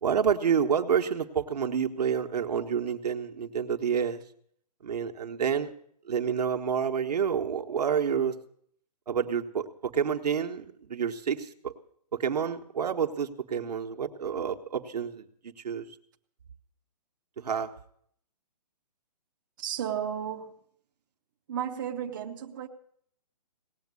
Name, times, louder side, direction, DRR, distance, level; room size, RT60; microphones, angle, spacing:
voice 1, 0.0-4.2 4.8-5.7 6.0-8.4 9.1-11.7 12.2-15.9 17.4-17.7, right 7 dB, 70° right, 1.3 m, -29 dB
voice 2, 19.6-20.6 21.5-22.7, right 9 dB, 30° right, 0.8 m, -33 dB
18.0 x 7.3 x 9.7 m
hypercardioid pair, 170°, 21 cm